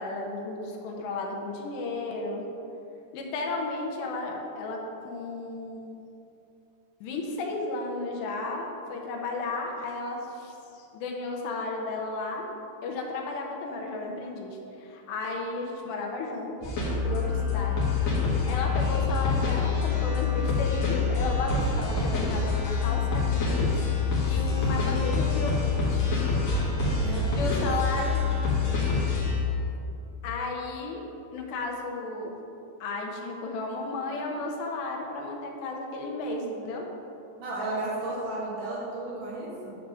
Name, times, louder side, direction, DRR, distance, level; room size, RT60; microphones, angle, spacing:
voice 1, 0.0-2.5 3.1-6.0 7.0-12.5 12.8-16.7 17.0-17.9 18.4-26.4 27.3-28.2 30.2-31.0 31.3-32.4 32.8-36.9, left 3 dB, 85° left, 0 dB, 3.0 m, -34 dB
sound 1, 16.6-29.4, left 4 dB, 50° left, 2.1 m, -26 dB
voice 2, 24.3-24.8 26.9-27.6 37.4-39.8, right 2 dB, 60° right, -7 dB, 2.5 m, -34 dB
10.0 x 3.5 x 6.6 m, 2.8 s
omnidirectional pair, 5.0 m